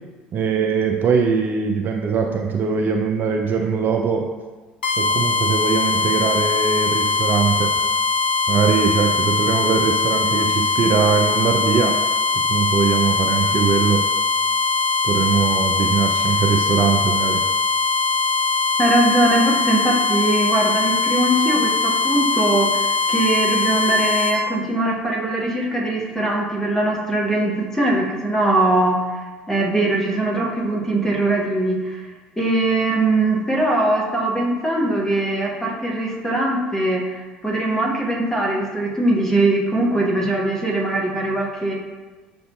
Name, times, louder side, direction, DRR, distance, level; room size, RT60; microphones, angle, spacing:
voice 1, 0.3-4.3 5.0-7.7 8.5-12.0 12.5-14.0 15.0-17.4, right 6 dB, 40° right, 2 dB, 0.4 m, -21 dB
sound 1, 4.8-24.4, left 4 dB, 85° left, 0.5 m, -21 dB
voice 2, 18.8-32.1 32.4-41.7, right 2 dB, 10° left, -2 dB, 1.0 m, -21 dB
6.5 x 2.6 x 2.2 m, 1.3 s
figure-of-eight pair, 65°, 5 cm